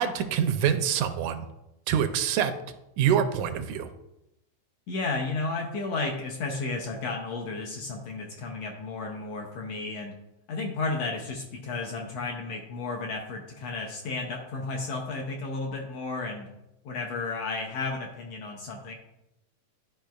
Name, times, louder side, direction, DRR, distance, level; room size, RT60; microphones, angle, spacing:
voice 1, 0.0-1.5 1.9-2.5 3.0-3.9, right 8 dB, 80° right, 9 dB, 1.9 m, -25 dB
voice 2, 4.9-10.1 10.5-16.5 16.8-18.9, left 3 dB, 75° left, 0 dB, 1.6 m, -33 dB
12.0 x 5.2 x 2.3 m, 0.90 s
omnidirectional pair, 3.5 m